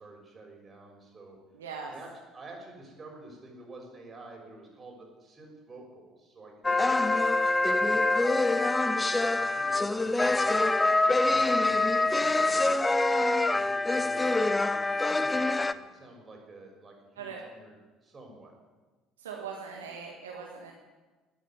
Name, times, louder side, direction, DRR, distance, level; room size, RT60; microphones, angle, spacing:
voice 1, 0.0-1.4 1.8-2.1 2.3-8.4 9.2-13.0 13.5-17.7 18.0-18.5, right 2 dB, 30° right, 0 dB, 6.2 m, -49 dB
voice 2, 1.5-1.9 12.2-12.3 17.2-17.4 19.2-20.7, right 6 dB, 80° right, 0 dB, 1.5 m, -40 dB
sound 1, 6.6-15.7, left 2 dB, 15° left, 0.7 m, -25 dB
13.0 x 9.1 x 9.3 m, 1.3 s
figure-of-eight pair, 55°, 0 cm